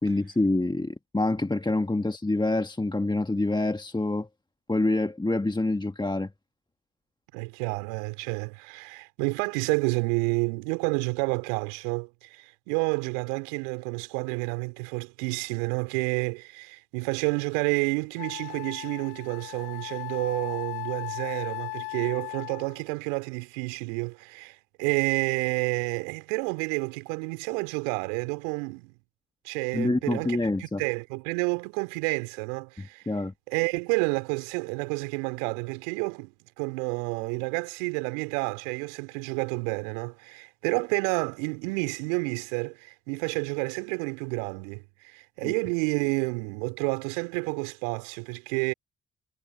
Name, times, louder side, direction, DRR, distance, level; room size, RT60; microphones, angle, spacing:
voice 1, 0.0-4.3 4.7-6.3 29.7-30.8 32.8-33.3 45.4-45.5, left 2 dB, 10° left, 1.5 m, -26 dB
voice 2, 7.3-28.9 29.4-33.1 33.5-48.7, right 35 dB, 75° right, 3.0 m, -30 dB
Wind instrument woodwind instrument, 17.5-17.6 18.2-22.8, left 34 dB, 75° left, 2.1 m, -37 dB
figure-of-eight pair, 40°, 39 cm